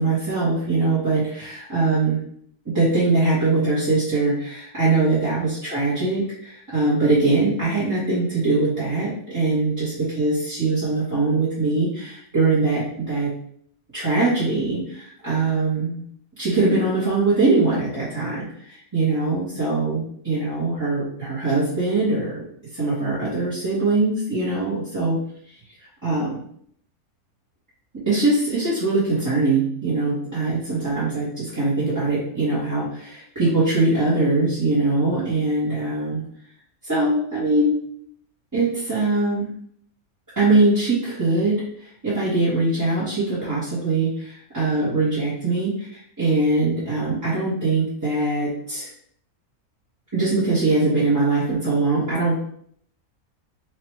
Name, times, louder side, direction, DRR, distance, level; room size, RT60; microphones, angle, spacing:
voice 1, 0.0-2.2 2.6-13.3 13.9-16.0 16.4-22.4 22.7-25.2 26.0-26.4 28.1-36.2 36.8-37.7 38.5-39.5 40.3-48.9 50.1-52.4, right 3 dB, 15° right, -11 dB, 1.2 m, -22 dB
4.4 x 2.8 x 3.2 m, 0.64 s
omnidirectional pair, 1.5 m